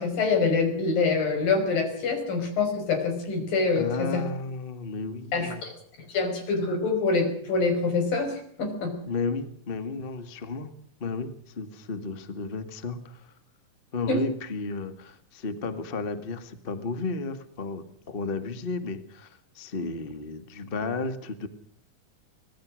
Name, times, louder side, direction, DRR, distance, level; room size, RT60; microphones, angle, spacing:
voice 1, 0.0-4.2 5.3-5.7 6.1-8.9 14.1-14.2, left 4 dB, 85° left, 6 dB, 7.1 m, -25 dB
voice 2, 3.7-5.6 9.1-10.7 11.0-13.2 13.9-21.5, left 4 dB, 25° left, 10 dB, 1.2 m, -33 dB
25.5 x 19.0 x 6.4 m, 0.62 s
omnidirectional pair, 3.9 m